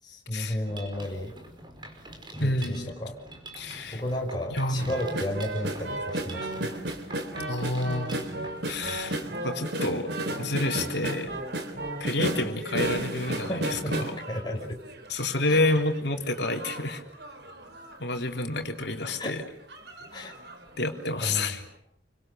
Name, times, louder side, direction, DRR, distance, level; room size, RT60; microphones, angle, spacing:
voice 1, 0.0-1.3 2.3-3.2 3.6-6.7 13.5-14.8 15.5-15.6 19.2-19.4 20.1-20.4 21.2-21.6, left 1 dB, 25° left, 0 dB, 5.0 m, -33 dB
Mechanisms, 0.7-9.3, right 1 dB, 25° right, 5.3 m, -46 dB
voice 2, 2.4-2.9 3.6-4.0 4.5-4.9 7.5-8.3 8.6-9.2 9.4-10.1 10.4-11.3 12.0-14.2 15.1-17.0 18.0-19.4 20.8-21.6, left 2 dB, 65° left, 4 dB, 3.6 m, -29 dB
sound 1, 4.8-15.1 15.5-18.0 18.5-18.6 18.9-19.2 19.7-20.6 21.0-21.1, right 1 dB, 60° right, 3.5 m, -34 dB
29.5 x 25.5 x 6.7 m, 0.71 s
head